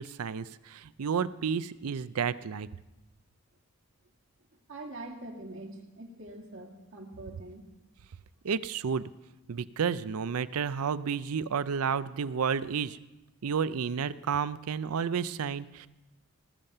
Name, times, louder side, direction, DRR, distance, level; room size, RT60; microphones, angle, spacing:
voice 1, 0.0-2.7 8.4-9.1 9.5-13.0 13.4-15.9, right 6 dB, 85° right, 16 dB, 0.5 m, -31 dB
voice 2, 4.7-7.6, right 2 dB, 65° right, 0 dB, 2.0 m, -44 dB
19.0 x 7.3 x 6.7 m, 1.0 s
head